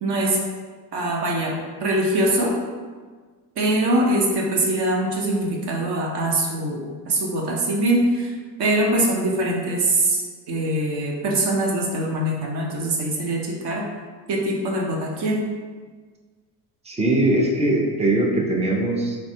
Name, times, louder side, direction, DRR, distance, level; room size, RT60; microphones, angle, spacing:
voice 1, 0.0-0.4 0.9-1.5 1.8-2.5 3.6-6.8 7.1-13.8 14.3-15.4, right 1 dB, 50° right, -1 dB, 0.8 m, -23 dB
voice 2, 16.8-19.2, right 1 dB, 15° right, 0 dB, 0.3 m, -21 dB
3.3 x 2.2 x 2.7 m, 1.5 s
supercardioid pair, 80°, 50 cm